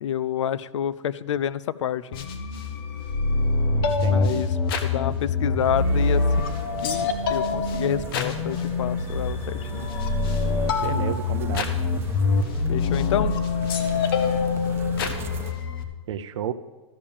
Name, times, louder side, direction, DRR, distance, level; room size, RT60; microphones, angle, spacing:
voice 1, 0.0-2.3 4.1-4.5 4.8-9.9 12.7-13.4, left 9 dB, 75° left, 18 dB, 0.5 m, -28 dB
sound 1, 2.1-15.8, left 4 dB, 50° left, 1.1 m, -25 dB
voice 2, 3.7-4.5 10.8-11.7 16.1-16.5, right 10 dB, 70° right, 10 dB, 0.6 m, -31 dB
sound 2, 5.7-15.5, right 7 dB, 15° right, 0.5 m, -38 dB
13.0 x 5.2 x 7.0 m, 1.3 s
hypercardioid pair, 155°, 16 cm